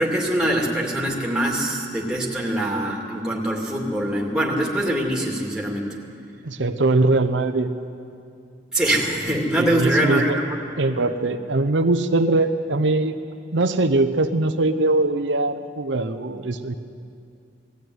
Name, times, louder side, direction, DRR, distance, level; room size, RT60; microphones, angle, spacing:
voice 1, 0.0-5.9 8.7-10.7, right 1 dB, 5° right, -2 dB, 2.5 m, -23 dB
voice 2, 6.4-7.7 9.6-10.4 10.8-13.1 13.5-16.8, right 2 dB, 80° right, 8 dB, 0.8 m, -21 dB
19.5 x 14.0 x 9.4 m, 2.5 s
head